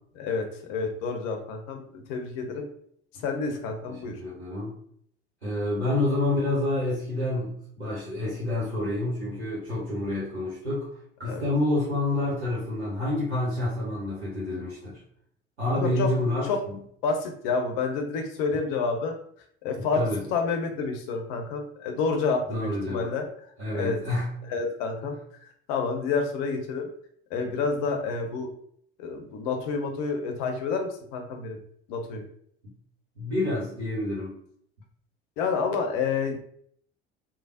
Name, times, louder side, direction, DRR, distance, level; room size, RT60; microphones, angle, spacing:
voice 1, 0.2-2.7 3.2-4.2 11.2-11.4 15.7-16.1 16.4-16.6 17.0-19.2 19.6-20.0 20.3-23.3 23.7-24.0 24.5-25.2 25.7-26.9 27.3-28.5 29.0-31.6 31.9-32.2 35.4-36.4, left 4 dB, 55° left, 4 dB, 0.6 m, -29 dB
voice 2, 3.8-4.7 5.4-10.9 11.2-15.0 15.6-16.8 19.7-20.2 22.5-23.1 23.6-24.3 33.2-34.3, left 2 dB, 90° right, -8 dB, 0.7 m, -28 dB
3.2 x 2.0 x 2.6 m, 0.64 s
figure-of-eight pair, 60°, 32 cm